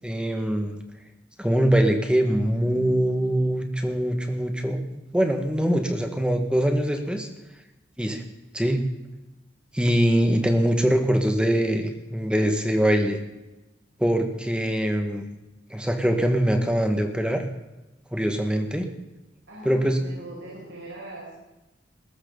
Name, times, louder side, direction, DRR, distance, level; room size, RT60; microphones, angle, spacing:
voice 1, 0.0-0.8 1.4-4.8 5.1-7.3 8.0-8.2 8.5-8.8 9.7-13.2 14.0-15.2 15.7-17.4 18.1-18.9 19.7-20.0, equal, 5° right, 5 dB, 1.8 m, -23 dB
voice 2, 19.5-21.3, right 1 dB, 90° right, -6 dB, 6.2 m, -40 dB
21.5 x 13.0 x 4.1 m, 0.99 s
head